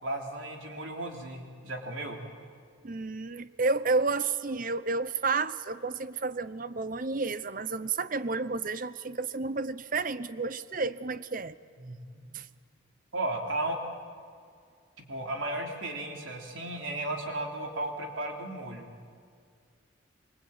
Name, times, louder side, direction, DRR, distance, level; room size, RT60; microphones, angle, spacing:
voice 1, 0.0-2.2 11.8-12.3 13.1-13.8 15.0-18.9, right 1 dB, 70° right, 2 dB, 3.5 m, -35 dB
voice 2, 2.8-11.6 12.3-12.5, right 3 dB, 40° right, 15 dB, 0.7 m, -31 dB
25.5 x 24.5 x 9.0 m, 2.2 s
head